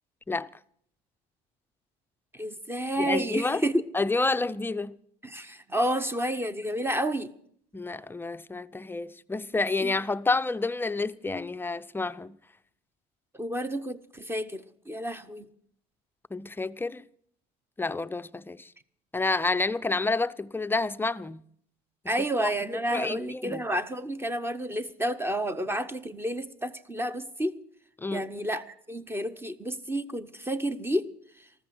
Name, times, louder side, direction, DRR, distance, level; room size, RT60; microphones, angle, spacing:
voice 1, 2.3-3.8 5.2-7.3 9.8-9.9 13.3-15.5 22.1-27.6 28.1-31.1 31.4-31.5, right 1 dB, 10° right, 0.9 m, -30 dB
voice 2, 3.0-3.6 3.9-5.0 7.7-12.3 16.3-17.0 17.8-18.7 19.1-21.4 22.4-23.6 28.0-28.3, left 3 dB, 10° left, 0.5 m, -29 dB
14.0 x 13.5 x 6.3 m
supercardioid pair, 95°, 19 cm